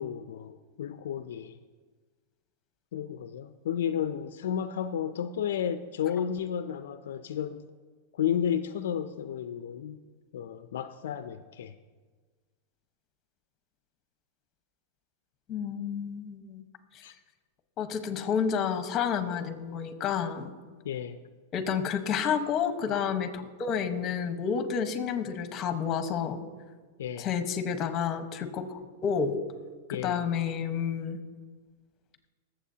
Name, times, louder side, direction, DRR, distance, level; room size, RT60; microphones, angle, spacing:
voice 1, 0.0-1.6 2.9-7.6 8.1-10.0 10.3-11.7 17.0-17.1 20.8-21.2 27.0-27.3 29.9-30.2, left 9 dB, 80° left, 10 dB, 0.5 m, -32 dB
voice 2, 15.5-16.6 16.9-17.0 17.8-20.5 21.5-26.4 27.2-29.4 29.9-31.2, left 7 dB, 35° left, 8 dB, 1.2 m, -30 dB
20.0 x 7.8 x 2.8 m, 1.4 s
hypercardioid pair, 130°, 0 cm